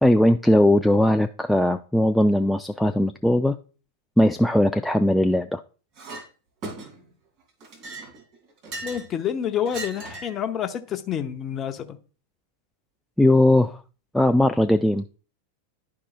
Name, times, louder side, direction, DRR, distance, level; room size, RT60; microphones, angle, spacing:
voice 1, 0.0-3.6 4.2-5.6 13.2-13.8 14.1-15.1, left 1 dB, ahead, 0.3 m, -19 dB
Chink clink, 6.0-6.3 6.6-7.1 7.6-9.1 9.7-10.4, right 2 dB, 40° right, 2.3 m, -37 dB
voice 2, 8.8-12.0, left 9 dB, 30° left, 0.8 m, -28 dB
11.5 x 4.8 x 2.3 m
figure-of-eight pair, 90°, 0 cm